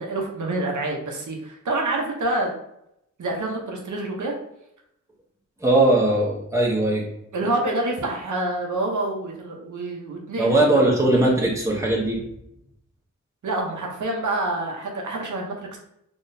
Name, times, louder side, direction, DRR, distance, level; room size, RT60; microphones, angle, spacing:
voice 1, 0.0-2.5 3.2-4.3 7.3-10.8 13.4-15.8, right 2 dB, 75° right, 0 dB, 0.8 m, -27 dB
voice 2, 5.6-7.1 10.4-12.2, right 1 dB, 10° right, -2 dB, 0.8 m, -19 dB
3.8 x 3.0 x 2.6 m, 0.78 s
wide cardioid pair, 130°, 30 cm